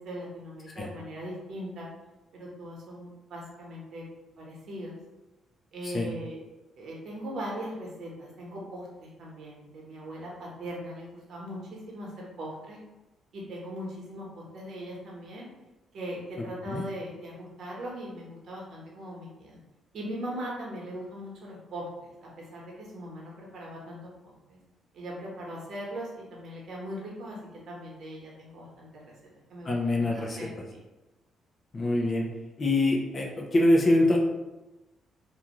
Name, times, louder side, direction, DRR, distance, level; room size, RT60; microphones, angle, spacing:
voice 1, 0.0-1.9 2.3-4.1 4.4-5.0 5.7-6.4 6.8-12.8 13.3-15.5 15.9-19.6 19.9-24.6 24.9-27.4 27.7-29.0 29.5-30.0 30.4-30.8, equal, 65° right, -3 dB, 0.9 m, -40 dB
voice 2, 29.6-30.5 31.7-32.2 32.6-34.2, left 1 dB, 40° left, -1 dB, 0.5 m, -24 dB
2.6 x 2.3 x 3.0 m, 1.0 s
cardioid pair, 90°, 0 cm